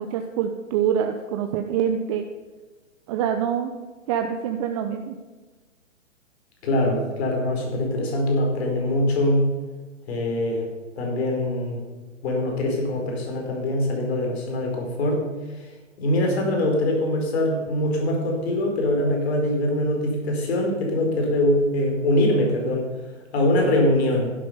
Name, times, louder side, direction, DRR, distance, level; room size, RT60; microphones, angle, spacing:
voice 1, 0.0-2.2 3.1-3.7 4.1-5.1, right 8 dB, 25° right, 5 dB, 0.6 m, -25 dB
voice 2, 6.6-9.4 10.1-10.7 11.0-11.8 12.2-15.2 15.6-15.7 16.0-22.9 23.3-24.3, left 1 dB, 55° left, 1 dB, 4.4 m, -23 dB
12.0 x 10.5 x 5.6 m, 1.3 s
hypercardioid pair, 135°, 39 cm